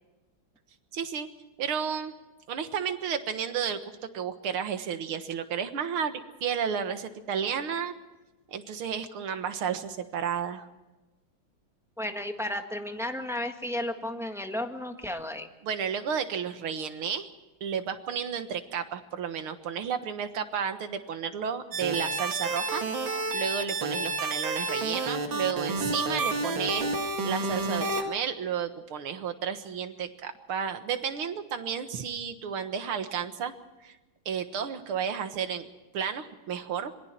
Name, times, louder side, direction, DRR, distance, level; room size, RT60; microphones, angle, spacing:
voice 1, 0.9-1.3 1.6-2.1 2.5-3.8 4.1-7.9 8.5-10.7 15.6-17.3 17.6-33.5 33.8-34.0 34.3-35.7 35.9-36.9, right 7 dB, 90° right, 9 dB, 2.3 m, -32 dB
voice 2, 12.0-15.5, left 1 dB, ahead, 5 dB, 1.4 m, -33 dB
sound 1, 21.7-28.0, right 3 dB, 65° right, 2.9 m, -30 dB
26.5 x 22.0 x 4.5 m, 1.1 s
omnidirectional pair, 2.3 m